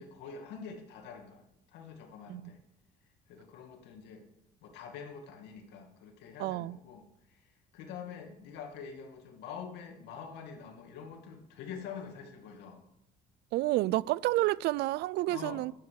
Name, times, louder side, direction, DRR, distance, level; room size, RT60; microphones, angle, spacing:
voice 1, 0.0-1.5 1.7-2.6 3.3-4.2 4.6-12.8 13.9-14.0 15.3-15.6, left 6 dB, 90° left, 2.3 m, -46 dB
voice 2, 6.4-6.8 13.5-15.7, right 17 dB, 80° right, 0.4 m, -30 dB
11.5 x 8.0 x 6.5 m
cardioid pair, 110°, 17 cm